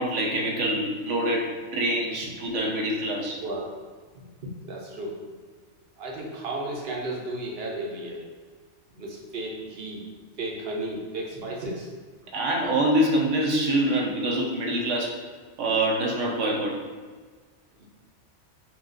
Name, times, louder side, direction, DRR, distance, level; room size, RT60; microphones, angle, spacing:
voice 1, 0.0-3.4 12.3-15.1 15.6-16.8, right 1 dB, 85° right, -1 dB, 1.1 m, -25 dB
voice 2, 4.4-5.2 6.0-8.2 8.9-10.0 10.4-11.9 17.8-17.9, right 1 dB, 60° right, -2 dB, 1.0 m, -34 dB
5.6 x 2.4 x 2.6 m, 1.5 s
omnidirectional pair, 1.2 m